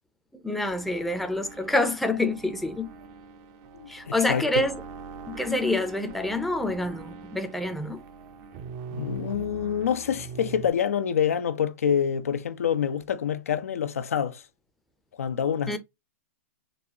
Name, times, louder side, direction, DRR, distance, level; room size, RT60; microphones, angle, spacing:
voice 1, 0.3-2.9 3.9-4.8 5.3-8.0 15.7-15.8, left 2 dB, ahead, 0.5 m, -27 dB
sound 1, 0.7-10.7, right 5 dB, 40° right, 0.6 m, -43 dB
voice 2, 3.7-4.5 8.9-14.4 15.2-15.8, left 8 dB, 85° left, 0.5 m, -27 dB
3.9 x 2.3 x 2.8 m
hypercardioid pair, 125°, 8 cm